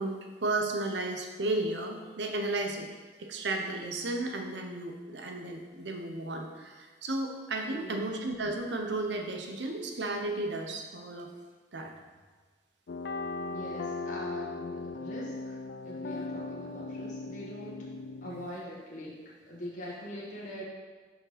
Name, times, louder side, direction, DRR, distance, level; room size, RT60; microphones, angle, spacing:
voice 1, 0.0-2.9 3.2-11.3 11.7-11.9 18.2-18.6, right 2 dB, 75° right, 3 dB, 0.9 m, -34 dB
voice 2, 7.7-8.1 13.5-17.8 18.2-19.2 19.5-20.6, equal, 45° left, -6 dB, 1.4 m, -42 dB
sound 1, 12.9-18.5, left 3 dB, 65° left, 0.4 m, -38 dB
6.1 x 5.2 x 5.0 m, 1.4 s
head